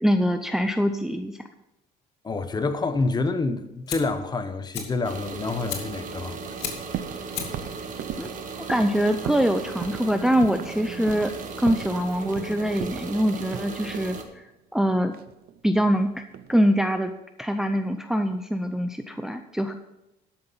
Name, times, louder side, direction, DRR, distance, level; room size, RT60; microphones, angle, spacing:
voice 1, 0.0-1.4 8.2-8.3 8.7-11.3 11.6-14.5 14.7-15.1 15.6-16.2 16.5-17.1 17.4-19.7, equal, 5° right, 0.5 m, -24 dB
voice 2, 2.2-6.5, left 3 dB, 25° left, 1.0 m, -27 dB
Fire, 3.6-13.9, left 7 dB, 80° left, 2.3 m, -40 dB
sound 1, 5.0-14.2, right 5 dB, 50° right, 1.5 m, -37 dB
sound 2, 6.9-7.2 7.5-9.5 9.8-10.1 10.4-10.7 11.1-11.4 11.7-12.5 12.8-14.2 15.1-16.0 16.3-16.8, right 10 dB, 65° right, 0.7 m, -36 dB
13.0 x 6.0 x 5.6 m
cardioid pair, 110°, 17 cm